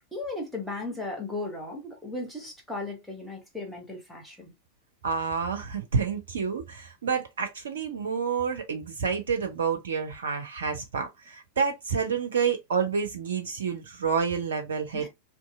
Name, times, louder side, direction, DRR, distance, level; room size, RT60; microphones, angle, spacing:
voice 1, 0.1-4.5 14.9-15.1, left 2 dB, ahead, 1.0 m, -36 dB
voice 2, 5.0-15.1, right 6 dB, 65° right, 0.4 m, -29 dB
2.6 x 2.5 x 2.4 m
figure-of-eight pair, 90°, 0 cm